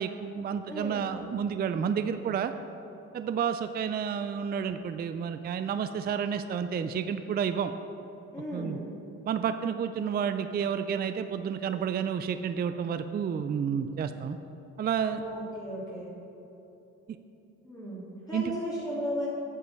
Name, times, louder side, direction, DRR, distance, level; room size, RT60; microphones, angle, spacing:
voice 1, 0.0-2.5 3.1-7.7 8.5-8.8 9.3-14.4 14.8-15.2 18.3-18.6, right 7 dB, 35° right, 10 dB, 0.4 m, -30 dB
voice 2, 0.7-1.1 8.3-8.8 15.1-16.1 17.6-19.3, equal, 10° left, -8 dB, 2.3 m, -35 dB
8.4 x 5.5 x 6.5 m, 3.0 s
cardioid pair, 90°, 30 cm